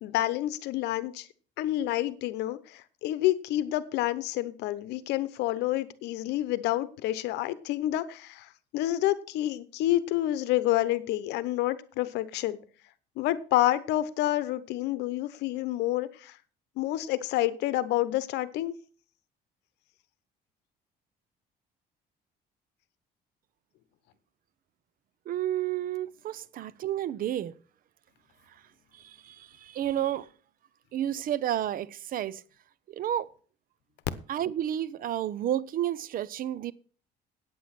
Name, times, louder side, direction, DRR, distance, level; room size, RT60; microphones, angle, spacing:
voice 1, 0.0-1.3 1.6-12.6 13.2-16.4 16.8-18.7, left 14 dB, 85° left, 0.9 m, -28 dB
voice 2, 25.3-27.5 28.9-30.3 30.9-32.4 32.9-33.3 34.3-36.7, right 11 dB, 55° right, 0.7 m, -31 dB
8.8 x 8.6 x 5.9 m
cardioid pair, 110°, 17 cm